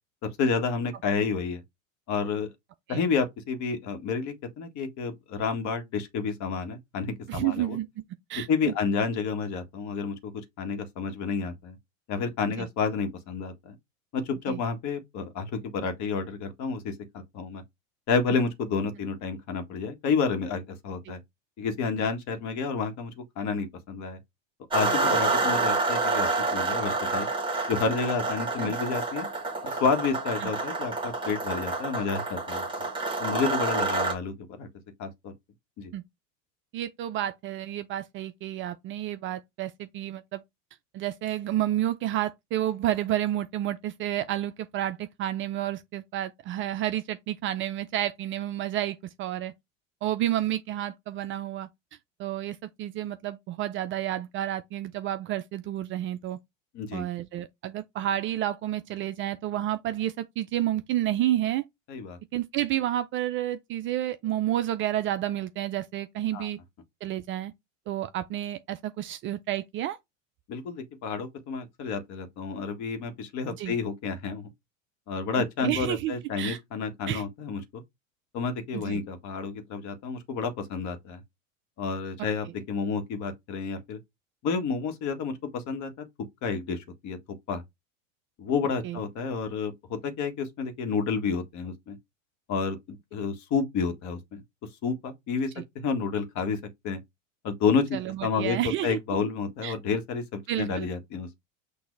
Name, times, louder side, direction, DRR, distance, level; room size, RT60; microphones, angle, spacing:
voice 1, 0.2-1.6 2.1-2.5 2.9-7.8 8.5-10.3 10.6-11.8 12.1-13.7 14.1-17.6 18.1-21.2 21.6-24.2 24.7-27.3 27.7-29.3 29.6-32.6 33.2-34.7 35.0-35.3 35.8-35.9 56.7-57.0 61.9-62.2 66.3-66.5 70.5-74.5 75.1-77.8 78.3-81.2 81.8-84.0 84.4-86.0 86.4-87.2 87.5-87.6 88.4-92.0 92.5-94.4 94.8-97.0 97.4-98.6 98.8-101.4, left 5 dB, 45° left, 1.4 m, -30 dB
voice 2, 7.3-7.9 8.3-8.7 12.6-12.7 14.5-14.6 21.1-21.2 28.6-28.7 30.4-30.5 35.9-36.0 36.7-40.4 40.9-49.5 50.0-51.7 52.2-56.4 56.9-61.7 62.3-66.6 67.0-67.5 67.9-70.0 73.6-73.7 75.4-76.6 77.1-77.2 78.7-79.0 88.8-89.0 95.6-95.7 97.9-99.0 99.6-99.8 100.5-100.9, right 13 dB, 35° right, 0.4 m, -30 dB
sound 1, 24.7-34.1, right 3 dB, 10° right, 1.5 m, -28 dB
6.1 x 2.6 x 3.2 m
hypercardioid pair, 105°, 40 cm